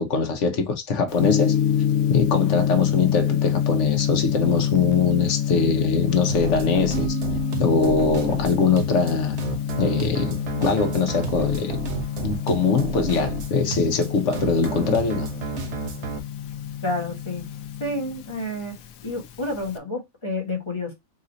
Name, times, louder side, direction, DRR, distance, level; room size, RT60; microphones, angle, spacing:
voice 1, 0.0-1.6 2.1-7.1 7.6-9.4 9.8-11.8 12.2-15.3, left 5 dB, 60° left, 1.2 m, -22 dB
Gong, 1.1-19.8, left 10 dB, 85° left, 1.0 m, -27 dB
sound 1, 6.3-16.2, right 5 dB, 60° right, 1.1 m, -32 dB
sound 2, 6.9-10.5, right 11 dB, 10° right, 0.4 m, -37 dB
voice 2, 16.8-17.5 17.8-18.7 19.0-20.9, left 1 dB, 20° left, 1.2 m, -29 dB
4.1 x 2.6 x 3.9 m
omnidirectional pair, 1.4 m